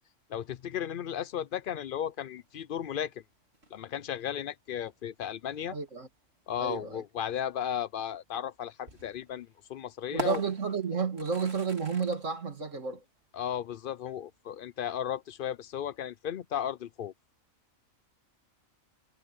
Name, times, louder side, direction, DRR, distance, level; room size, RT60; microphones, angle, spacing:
voice 1, 0.3-3.1 3.7-5.8 6.5-10.4 13.3-17.1, left 9 dB, 60° left, 0.6 m, -35 dB
sound 1, 1.0-16.3, right 2 dB, 50° right, 3.6 m, -48 dB
voice 2, 5.7-6.1 6.6-7.0 10.1-13.0, right 5 dB, 65° right, 2.8 m, -31 dB
omnidirectional pair, 1.4 m